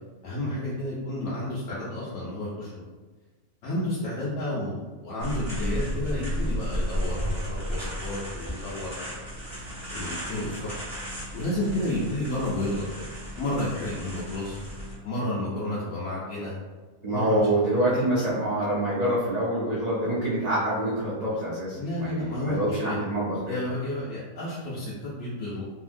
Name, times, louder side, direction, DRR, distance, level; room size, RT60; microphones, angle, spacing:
voice 1, 0.2-2.8 3.6-9.2 9.9-10.8 11.3-12.9 13.4-14.6 15.0-16.5 17.1-17.8 21.8-22.6 22.9-23.0 23.4-25.6, left 1 dB, 65° left, -7 dB, 0.8 m, -31 dB
sound 1, 5.2-15.0, equal, 20° right, 0.9 m, -33 dB
voice 2, 17.0-23.6, right 1 dB, 70° right, -9 dB, 0.3 m, -26 dB
2.7 x 2.6 x 2.5 m, 1.3 s
omnidirectional pair, 1.6 m